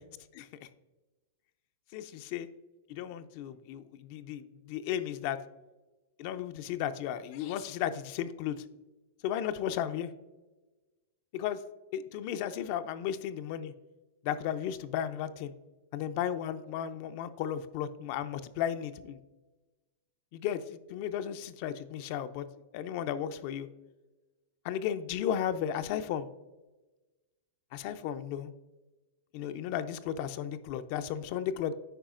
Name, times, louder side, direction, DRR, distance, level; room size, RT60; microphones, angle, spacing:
voice 1, 1.9-2.5 2.9-5.4 6.2-8.6 9.2-10.1 11.3-11.6 11.9-13.7 14.2-15.5 15.9-19.2 20.3-22.5 22.7-23.7 24.6-26.3 27.7-28.5 29.3-31.7, left 10 dB, 55° left, 10 dB, 0.4 m, -34 dB
8.9 x 4.8 x 2.5 m, 1.1 s
hypercardioid pair, 120°, 0 cm